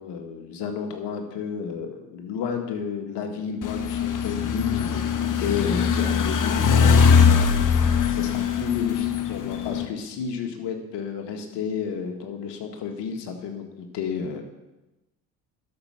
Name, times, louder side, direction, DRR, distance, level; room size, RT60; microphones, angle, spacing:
voice 1, 0.0-7.7 8.1-14.4, left 6 dB, 60° left, 4 dB, 1.9 m, -32 dB
sound 1, 3.6-9.8, left 6 dB, 40° left, 1.2 m, -21 dB
11.5 x 6.8 x 5.9 m, 1.0 s
hypercardioid pair, 60°, 47 cm